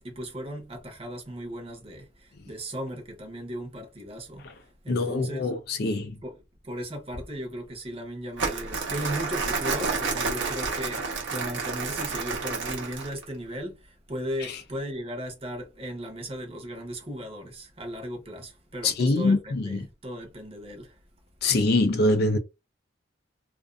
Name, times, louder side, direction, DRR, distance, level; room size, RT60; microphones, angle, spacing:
voice 1, 0.0-5.5 6.2-6.4 6.6-21.0, equal, 30° right, 0.8 m, -37 dB
voice 2, 4.9-6.2 14.4-14.6 18.8-19.8 21.4-22.4, left 2 dB, 55° left, 0.4 m, -24 dB
Crumpling crinkling, 8.4-13.2, right 4 dB, 65° right, 0.9 m, -30 dB
2.5 x 2.4 x 2.3 m
head